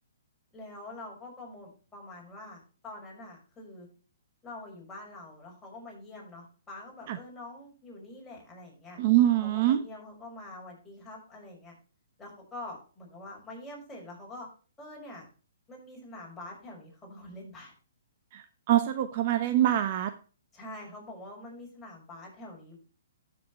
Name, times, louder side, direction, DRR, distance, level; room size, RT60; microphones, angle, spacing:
voice 1, 0.5-3.9 4.4-9.0 9.4-11.7 12.2-14.5 14.8-15.3 15.7-17.7 20.5-22.8, left 2 dB, 10° left, -3 dB, 5.7 m, -45 dB
voice 2, 9.0-9.8 18.3-20.1, right 12 dB, 40° right, 10 dB, 1.0 m, -24 dB
13.0 x 7.3 x 3.1 m, 0.36 s
hypercardioid pair, 150°, 0 cm